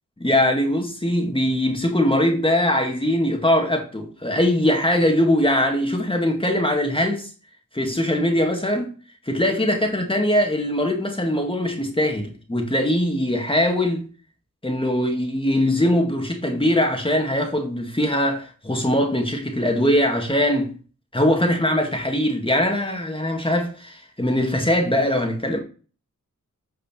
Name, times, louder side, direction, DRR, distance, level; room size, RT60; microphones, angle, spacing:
voice 1, 0.2-7.3 7.7-8.9 9.3-14.1 14.6-20.7 21.1-25.6, left 1 dB, 15° left, 2.0 m, -21 dB
8.7 x 4.9 x 4.4 m
wide cardioid pair, 75°, 32 cm